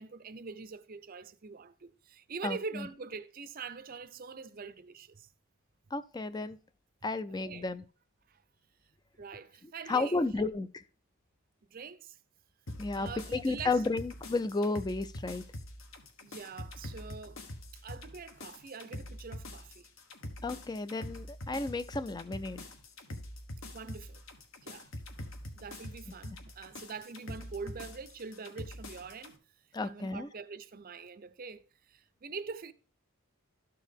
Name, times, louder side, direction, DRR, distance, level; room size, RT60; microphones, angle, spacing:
voice 1, 0.0-5.3 7.4-7.7 8.3-8.4 9.2-10.5 11.7-12.2 12.9-13.8 16.2-17.4 17.7-19.9 23.7-24.2 24.6-24.9 25.5-29.4 29.8-32.7, right 5 dB, 40° right, 0.5 m, -44 dB
voice 2, 2.4-2.9 5.9-6.6 7.0-7.8 9.9-10.7 12.8-15.4 20.4-22.7 29.7-30.3, left 3 dB, 20° left, 0.3 m, -32 dB
sound 1, 12.7-29.3, left 1 dB, 65° left, 1.2 m, -45 dB
12.5 x 4.6 x 3.4 m
head